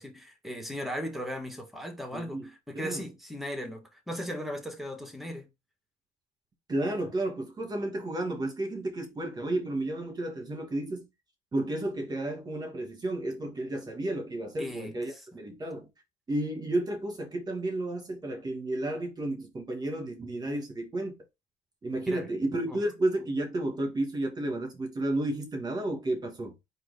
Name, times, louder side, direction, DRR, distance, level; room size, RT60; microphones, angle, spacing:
voice 1, 0.0-5.5 14.6-14.9 22.1-22.3 22.7-22.8, equal, ahead, 1.5 m, -37 dB
voice 2, 2.1-2.5 2.7-3.1 6.7-11.1 11.5-15.9 16.3-21.2 21.8-26.5, right 1 dB, 25° right, 1.8 m, -32 dB
4.5 x 2.8 x 4.1 m
cardioid pair, 110°, 17 cm